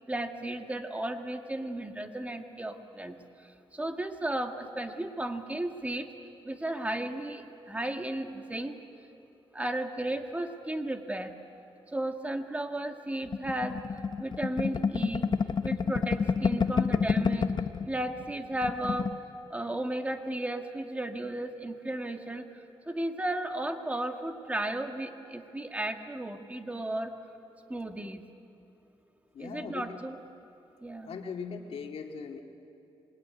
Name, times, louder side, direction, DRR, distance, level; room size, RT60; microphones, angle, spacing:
voice 1, 0.1-3.2 3.7-6.1 6.4-8.8 9.5-11.3 11.9-13.8 14.2-15.3 15.6-17.5 17.9-19.1 19.5-22.4 22.9-27.1 27.7-28.2 29.4-30.2 30.8-31.2, right 1 dB, 15° right, 5 dB, 1.9 m, -34 dB
sound 1, 13.3-17.9 18.2-18.3 18.6-19.2, left 5 dB, 45° left, 1.0 m, -28 dB
voice 2, 29.3-30.0 31.1-32.4, left 5 dB, 75° left, 3 dB, 2.4 m, -39 dB
26.0 x 21.5 x 9.7 m, 2.6 s
cardioid pair, 100°, 10 cm